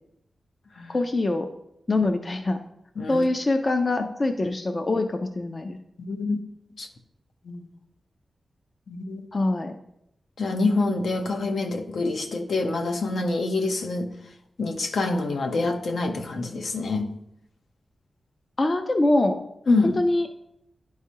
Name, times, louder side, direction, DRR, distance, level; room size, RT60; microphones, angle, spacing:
voice 1, 0.9-1.5 1.9-2.6 3.1-5.8 9.3-9.8 18.6-19.4 19.8-20.3, left 2 dB, 30° left, 7 dB, 0.4 m, -24 dB
voice 2, 3.0-3.3 6.0-6.4 6.8-6.9 7.5-7.6 8.9-9.2 10.4-14.1 14.6-17.1 19.7-20.0, left 3 dB, 70° left, 5 dB, 0.7 m, -26 dB
11.0 x 4.8 x 2.8 m, 0.80 s
wide cardioid pair, 145°, 0 cm